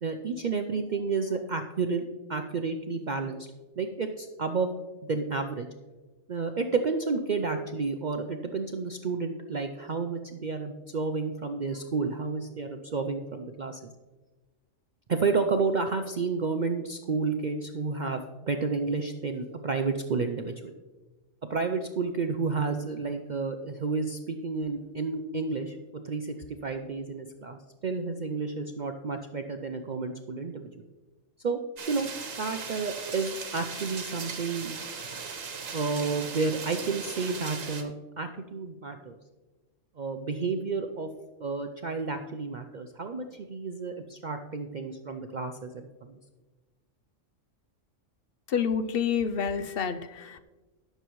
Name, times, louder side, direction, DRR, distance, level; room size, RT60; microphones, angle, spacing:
voice 1, 0.0-3.5 3.8-4.7 5.0-5.7 6.3-13.8 15.1-20.7 21.5-25.8 26.0-30.7 31.4-31.6 31.9-32.1 32.4-34.8 35.7-37.9 38.2-39.1 40.0-41.1 41.4-46.2, right 4 dB, 50° right, 5 dB, 0.5 m, -31 dB
sound 1, 31.8-37.8, right 5 dB, 85° right, 1.5 m, -38 dB
voice 2, 48.5-50.4, left 7 dB, 55° left, 11 dB, 0.7 m, -28 dB
18.0 x 6.8 x 3.1 m, 1.2 s
omnidirectional pair, 1.3 m